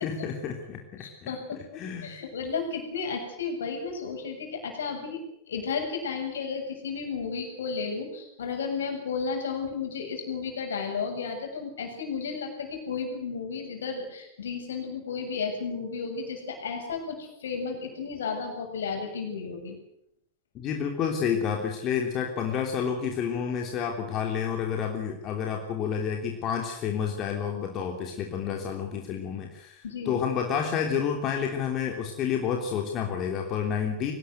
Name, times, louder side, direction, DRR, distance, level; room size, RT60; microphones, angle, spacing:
voice 1, 0.0-1.3 1.6-2.2 20.5-34.1, left 7 dB, 35° left, 2 dB, 3.2 m, -30 dB
voice 2, 1.0-5.2 5.5-19.8 29.8-30.2, left 5 dB, 65° left, 3 dB, 7.5 m, -33 dB
23.5 x 19.0 x 8.2 m, 0.75 s
figure-of-eight pair, 90°, 0 cm